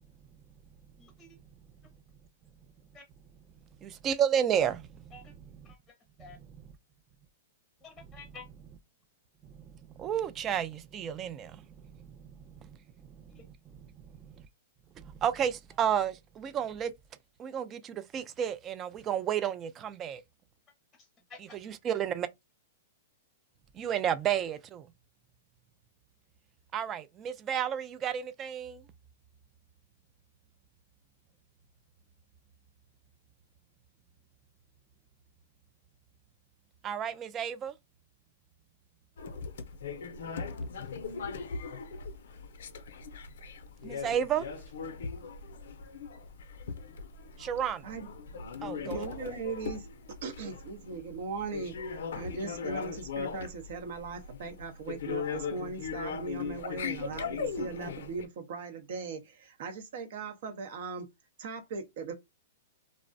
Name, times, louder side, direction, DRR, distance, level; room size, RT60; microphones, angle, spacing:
voice 1, 1.0-1.4 2.9-3.0 5.1-5.3 5.6-6.4 7.8-8.5 13.3-13.5 21.0-21.6, left 4 dB, 15° left, 0.7 m, -51 dB
voice 2, 4.0-4.7 10.0-10.7 10.9-11.3 15.2-15.5 15.8-16.1 16.5-16.9 17.5-17.6 18.1-19.5 20.0-20.2 21.9-22.3 23.8-24.6 26.7-27.0 27.5-28.7 36.8-37.7 44.0-44.4 47.5-47.8 48.6-49.0, right 9 dB, 25° right, 0.3 m, -29 dB
sound 1, 39.2-58.2, left 5 dB, 75° left, 0.5 m, -39 dB
voice 3, 48.8-51.8 52.1-61.1 61.4-62.1, right 4 dB, 65° right, 0.7 m, -39 dB
2.4 x 2.0 x 2.5 m
hypercardioid pair, 130°, 0 cm